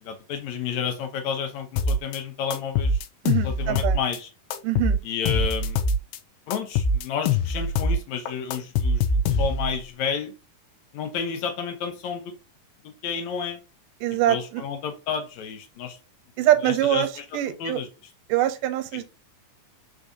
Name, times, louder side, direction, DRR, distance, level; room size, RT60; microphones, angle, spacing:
voice 1, 0.0-3.0 3.4-4.3 5.0-5.8 6.5-9.0 9.4-10.3 10.9-12.3 12.8-13.6 14.3-16.0 16.6-17.2 17.6-17.9 18.9-19.0, left 6 dB, 70° left, 1.9 m, -31 dB
sound 1, 1.8-2.2 2.5-4.2 4.5-6.2 6.5-8.0 8.3-9.8, left 2 dB, 90° left, 2.2 m, -23 dB
voice 2, 3.2-4.0 4.6-5.0 14.0-14.6 16.4-17.1 17.3-17.8 18.3-19.0, right 13 dB, 85° right, 2.2 m, -23 dB
4.7 x 3.9 x 2.6 m
omnidirectional pair, 3.8 m